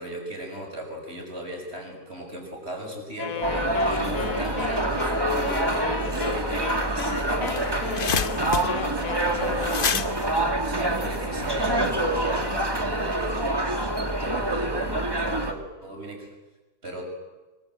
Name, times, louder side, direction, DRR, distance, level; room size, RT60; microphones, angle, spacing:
voice 1, 0.0-3.5 3.8-7.9 8.7-10.1 10.6-13.3 14.1-16.3 16.8-17.1, right 1 dB, 40° right, 3 dB, 6.6 m, -36 dB
Wind instrument woodwind instrument, 3.2-10.1, left 8 dB, 60° left, 1.4 m, -35 dB
sound 1, 3.4-15.5, right 1 dB, 15° right, 2.0 m, -26 dB
sound 2, 6.9-7.0 7.2-11.5, left 6 dB, 40° left, 1.0 m, -30 dB
24.5 x 24.5 x 8.0 m, 1.2 s
omnidirectional pair, 1.7 m